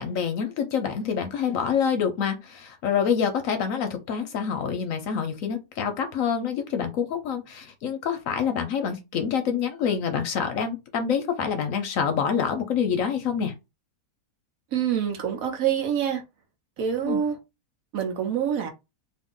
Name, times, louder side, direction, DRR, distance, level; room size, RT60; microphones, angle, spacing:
voice 1, 0.0-13.5 17.0-17.2, left 7 dB, 65° left, 0.9 m, -26 dB
voice 2, 14.7-16.2 16.8-17.4 17.9-18.7, right 8 dB, 65° right, 1.1 m, -26 dB
2.8 x 2.5 x 3.6 m
omnidirectional pair, 1.7 m